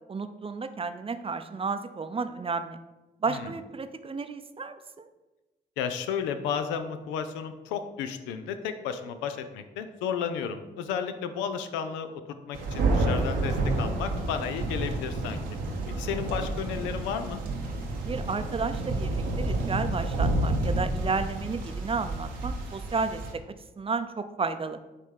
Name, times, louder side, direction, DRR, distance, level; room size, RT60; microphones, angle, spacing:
voice 1, 0.1-2.8 3.2-5.1 18.0-23.2 23.8-24.8, right 4 dB, 30° right, 10 dB, 0.6 m, -32 dB
voice 2, 5.8-12.2 12.5-15.4 15.9-17.4, left 7 dB, 90° left, 9 dB, 0.5 m, -33 dB
Thunder, 12.5-23.3, right 2 dB, 85° right, 0.9 m, -29 dB
5.3 x 3.2 x 5.5 m, 1.1 s
hypercardioid pair, 50°, 19 cm